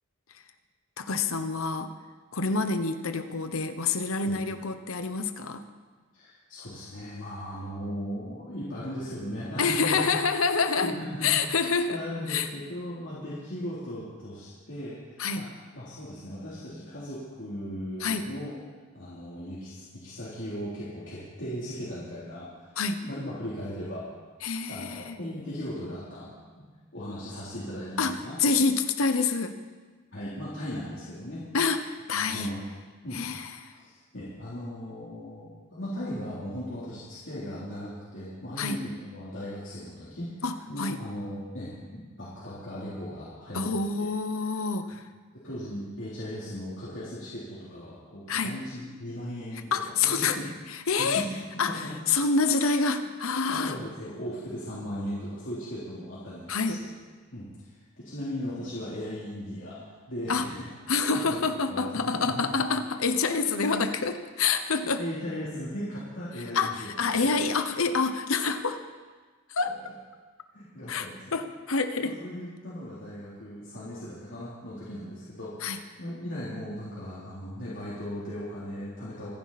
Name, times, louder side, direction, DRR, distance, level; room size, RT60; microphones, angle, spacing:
voice 1, 1.0-1.9 2.3-5.6 9.6-10.9 11.2-12.0 12.3-12.5 15.2-15.5 18.0-18.3 22.8-23.0 24.4-25.2 28.0-29.6 31.5-32.5 33.1-33.7 38.6-38.8 40.4-41.0 43.5-45.0 48.3-48.6 49.7-50.4 50.7-51.2 51.6-53.8 56.5-56.8 60.3-60.5 60.9-65.0 66.5-68.8 69.5-69.7 70.9-72.2 75.6-75.8, left 4 dB, 85° left, 9 dB, 1.0 m, -27 dB
voice 2, 6.1-10.2 10.8-11.6 11.9-15.5 15.7-18.6 18.9-22.8 23.0-24.1 24.7-26.6 26.9-28.4 30.1-31.4 32.2-32.7 33.0-33.2 33.7-43.8 45.3-50.5 51.0-51.9 53.5-56.9 57.3-60.7 61.3-61.4 61.7-62.6 64.8-67.1 69.8-69.9 70.5-71.4 72.2-79.3, equal, 60° left, -9 dB, 3.5 m, -37 dB
26.0 x 10.5 x 4.2 m, 1.4 s
head